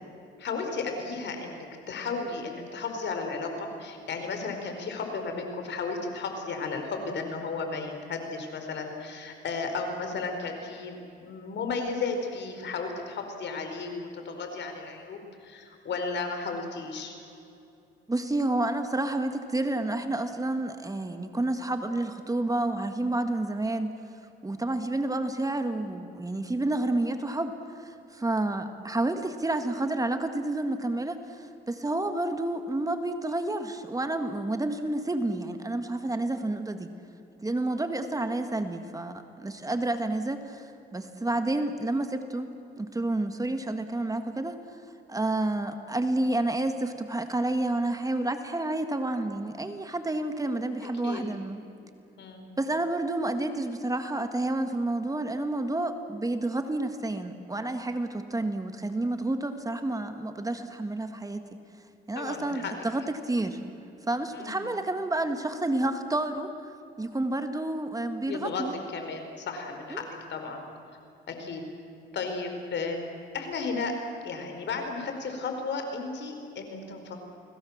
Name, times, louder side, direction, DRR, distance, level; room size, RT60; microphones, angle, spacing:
voice 1, 0.4-17.1 50.8-51.2 52.2-52.5 62.1-62.7 64.3-64.6 68.3-68.6 68.9-70.6 71.3-71.6 72.1-73.0 73.3-73.9 74.2-77.2, left 4 dB, 65° left, 5 dB, 4.9 m, -34 dB
voice 2, 18.1-24.0 24.4-27.5 27.8-36.9 37.4-44.6 45.1-51.7 52.6-61.5 62.1-63.6 64.1-66.7 67.0-68.7 69.9-70.1, right 2 dB, 15° right, 7 dB, 1.9 m, -30 dB
30.0 x 20.5 x 7.5 m, 2.7 s
cardioid pair, 90°, 20 cm